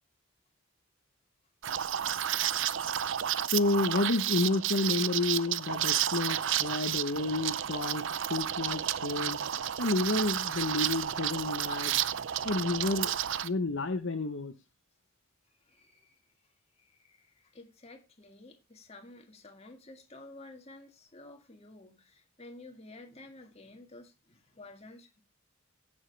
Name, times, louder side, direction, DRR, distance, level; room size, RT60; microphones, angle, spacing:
Liquid, 1.6-13.5, right 10 dB, 60° right, 0.5 m, -31 dB
voice 1, 3.5-8.0 8.3-9.4 9.8-11.9 12.4-13.1 13.4-14.5, left 2 dB, 60° left, 0.9 m, -30 dB
voice 2, 15.6-16.3 16.8-25.2, left 2 dB, 30° left, 1.9 m, -52 dB
16.5 x 7.3 x 3.3 m
head